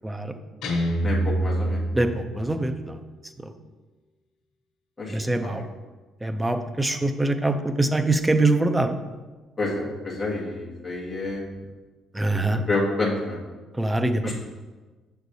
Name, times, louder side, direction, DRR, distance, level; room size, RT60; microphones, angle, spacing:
Guitar, 0.6-2.7, right 1 dB, 90° left, 1.1 m, -26 dB
voice 1, 1.0-1.8 5.0-5.6 6.4-6.5 9.6-11.6 12.7-13.4 14.2-14.4, left 2 dB, 15° left, -5 dB, 1.4 m, -29 dB
voice 2, 2.3-3.0 5.1-5.6 6.2-9.0 12.2-12.6 13.8-14.2, right 2 dB, 10° right, 8 dB, 0.3 m, -23 dB
7.1 x 6.2 x 2.7 m, 1.3 s
cardioid pair, 170°, 0 cm